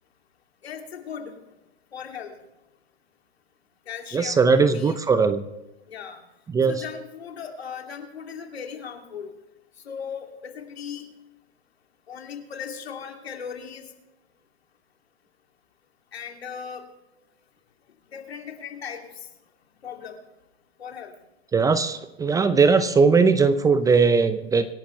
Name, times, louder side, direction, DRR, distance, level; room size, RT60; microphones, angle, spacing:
voice 1, 0.6-1.4 1.9-2.3 3.9-5.0 5.9-6.2 6.7-9.3 9.8-11.1 12.1-13.8 16.1-16.8 18.1-19.1 19.8-20.2 20.8-21.1, left 7 dB, 75° left, 3 dB, 2.8 m, -37 dB
voice 2, 4.1-5.4 6.5-6.7 21.5-24.7, right 4 dB, 10° right, 12 dB, 0.6 m, -19 dB
25.5 x 11.0 x 3.3 m, 1.0 s
hypercardioid pair, 120°, 31 cm